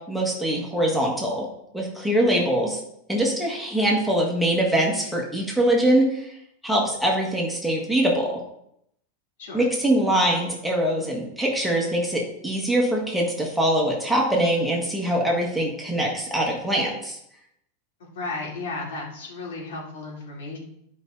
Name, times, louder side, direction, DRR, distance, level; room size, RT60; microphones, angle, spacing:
voice 1, 0.1-1.5 1.7-2.8 3.1-6.3 6.6-8.4 9.5-17.2, right 1 dB, ahead, -2 dB, 1.6 m, -23 dB
voice 2, 18.0-20.6, left 3 dB, 80° left, -3 dB, 3.5 m, -34 dB
12.0 x 5.3 x 4.0 m, 0.76 s
supercardioid pair, 175°, 0 cm